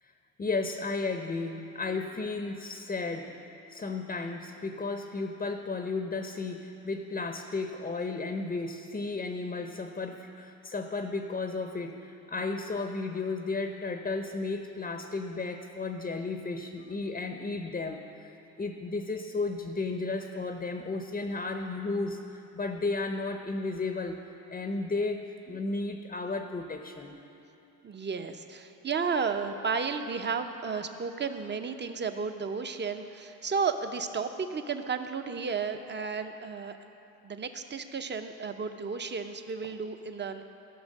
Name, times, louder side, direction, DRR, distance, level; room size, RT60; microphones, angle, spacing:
voice 1, 0.4-3.4 3.7-18.3 18.6-22.2 22.5-27.2, left 3 dB, 20° left, 6 dB, 0.7 m, -34 dB
voice 2, 27.8-36.8 37.2-40.4, right 5 dB, 25° right, 8 dB, 0.7 m, -33 dB
14.5 x 5.9 x 6.5 m, 3.0 s
supercardioid pair, 80°, 41 cm